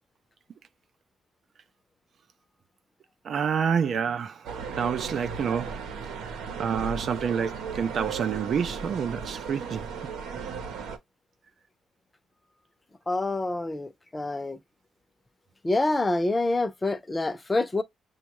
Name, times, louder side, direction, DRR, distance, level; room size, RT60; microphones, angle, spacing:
voice 1, 3.2-5.8 6.6-9.9, right 7 dB, 60° right, 0.4 m, -28 dB
sound 1, 4.4-11.0, right 5 dB, 85° right, 0.9 m, -36 dB
voice 2, 13.1-14.6 15.6-17.8, left 2 dB, 20° left, 0.7 m, -27 dB
6.1 x 2.3 x 3.0 m
cardioid pair, 90°, 0 cm